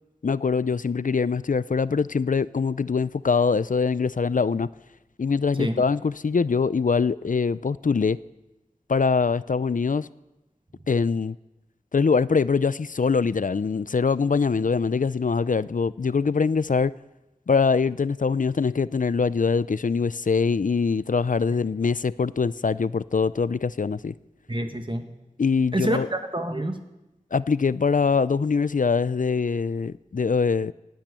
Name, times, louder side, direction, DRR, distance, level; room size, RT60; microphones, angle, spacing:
voice 1, 0.2-4.7 5.2-8.2 8.9-10.1 10.9-11.4 11.9-16.9 17.5-24.1 25.4-26.1 27.3-30.7, left 5 dB, 70° left, 18 dB, 0.4 m, -23 dB
voice 2, 24.5-25.1 25.7-26.8, right 1 dB, 35° right, 6 dB, 1.7 m, -27 dB
19.0 x 9.1 x 8.3 m, 1.0 s
wide cardioid pair, 40°, 14 cm